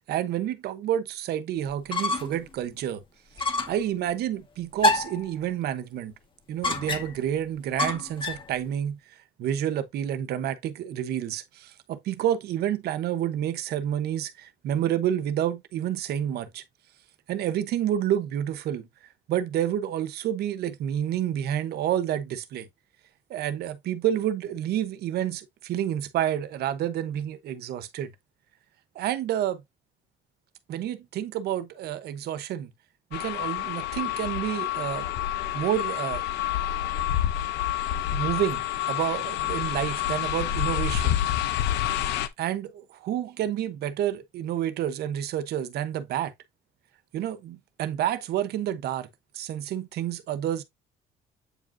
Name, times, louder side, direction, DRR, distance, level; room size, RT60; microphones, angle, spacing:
voice 1, 0.0-3.0 3.7-6.1 6.5-9.0 9.4-16.6 17.3-18.9 19.3-22.7 23.3-28.1 28.9-29.6 30.7-32.7 33.1-35.1 35.5-36.2 38.1-41.2 42.4-46.3 47.1-49.1 49.3-50.6, right 11 dB, 70° right, 1.1 m, -29 dB
sound 1, 1.7-2.4 2.8-2.9 3.4-3.8 4.8-5.3 6.6-7.3 7.8-8.5, left 2 dB, 30° left, 1.7 m, -27 dB
sound 2, 33.1-42.3, left 12 dB, 85° left, 0.9 m, -28 dB
8.5 x 4.9 x 2.7 m
cardioid pair, 110°, 17 cm